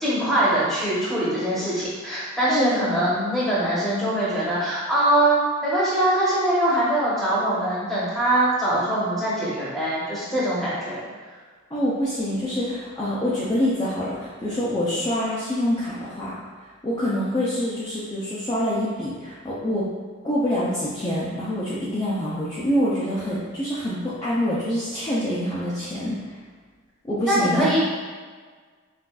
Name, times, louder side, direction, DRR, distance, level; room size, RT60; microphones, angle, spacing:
voice 1, 0.0-11.0 27.3-27.8, right 1 dB, ahead, -9 dB, 1.0 m, -23 dB
voice 2, 2.5-3.1 11.7-16.4 16.8-19.9 20.2-26.3 27.0-27.7, equal, 20° left, -10 dB, 0.5 m, -26 dB
5.8 x 2.5 x 2.4 m, 1.5 s
head